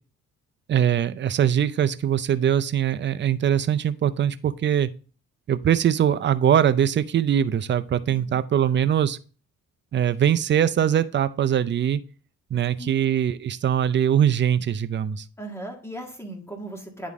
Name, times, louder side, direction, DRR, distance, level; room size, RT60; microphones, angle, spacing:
voice 1, 0.7-4.9 5.5-9.2 9.9-12.0 12.5-15.2, right 9 dB, 40° right, 12 dB, 0.5 m, -22 dB
voice 2, 8.1-8.4 12.8-13.0 15.4-17.1, right 1 dB, 10° left, 1 dB, 1.8 m, -37 dB
9.5 x 3.7 x 3.6 m, 0.39 s
cardioid pair, 90°, 30 cm